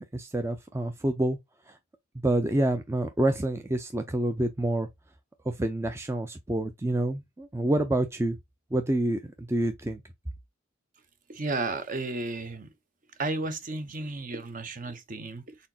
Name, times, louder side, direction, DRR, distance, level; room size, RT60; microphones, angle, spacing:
voice 1, 0.1-1.4 1.7-1.8 2.2-4.9 5.5-8.4 8.7-10.0, right 1 dB, 15° right, 0.4 m, -27 dB
voice 2, 11.3-12.7 13.2-15.6, right 2 dB, 40° right, 0.7 m, -33 dB
4.2 x 3.7 x 2.7 m
head